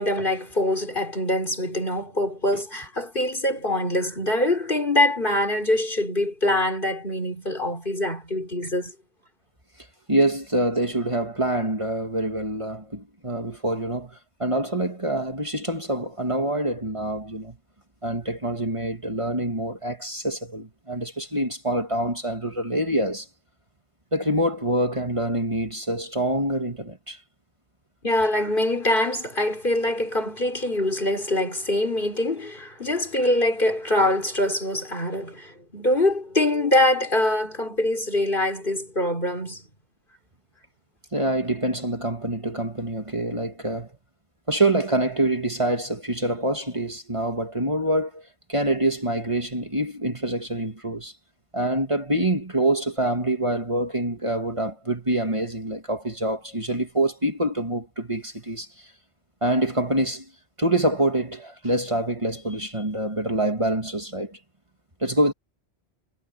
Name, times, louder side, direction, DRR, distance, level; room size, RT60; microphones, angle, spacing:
voice 1, 0.0-8.9 28.0-39.7, left 1 dB, 50° left, 4.9 m, -24 dB
voice 2, 10.1-17.6 18.0-23.3 24.1-27.2 41.1-43.9 44.5-51.1 51.5-58.9 59.4-60.3 60.6-64.4 65.0-65.3, right 1 dB, 30° right, 2.6 m, -26 dB
omnidirectional pair, 1.1 m